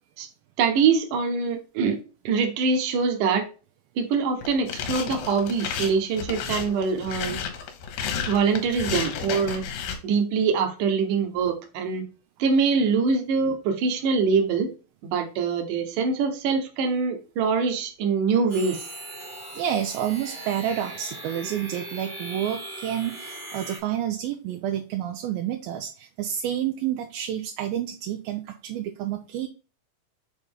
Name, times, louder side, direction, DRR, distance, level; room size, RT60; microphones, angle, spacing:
voice 1, 0.6-2.0 2.2-3.5 4.0-7.4 8.3-9.6 10.0-12.0 12.4-14.7 15.0-18.8, right 5 dB, 65° right, 5 dB, 2.4 m, -24 dB
sound 1, 4.4-10.0, left 6 dB, 75° left, 2.9 m, -32 dB
sound 2, 18.5-23.8, right 1 dB, 30° right, 1.2 m, -39 dB
voice 2, 19.5-29.5, right 10 dB, 80° right, 4 dB, 2.3 m, -29 dB
7.2 x 4.1 x 3.7 m, 0.34 s
omnidirectional pair, 4.5 m